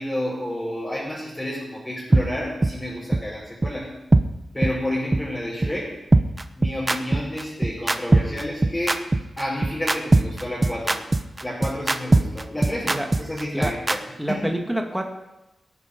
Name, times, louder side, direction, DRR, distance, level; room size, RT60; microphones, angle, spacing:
voice 1, 0.0-3.9 4.5-5.9 6.6-9.1 9.4-11.0 11.4-14.0 14.3-14.6, left 1 dB, 10° left, -8 dB, 5.6 m, -30 dB
sound 1, 2.1-2.2 2.6-2.7 3.1-3.2 3.6-3.7 4.1-4.2 4.6-4.7 5.1-5.2 5.6-5.7 6.1-14.0, right 2 dB, 25° right, 0.8 m, -19 dB
voice 2, 14.2-15.1, right 1 dB, 5° right, 2 dB, 2.0 m, -27 dB
17.0 x 9.7 x 5.4 m, 0.96 s
cardioid pair, 85°, 0 cm